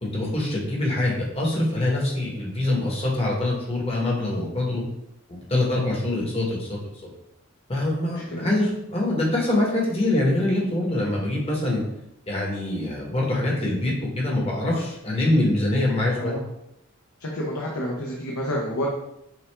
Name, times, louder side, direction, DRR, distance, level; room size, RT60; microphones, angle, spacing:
voice 1, 0.0-4.8 5.3-6.8 7.7-11.8 12.3-16.4, left 1 dB, 25° left, -2 dB, 1.1 m, -24 dB
voice 2, 8.1-8.5 16.2-16.4 17.2-18.9, equal, 85° left, -2 dB, 0.8 m, -30 dB
5.9 x 2.4 x 3.3 m, 0.81 s
head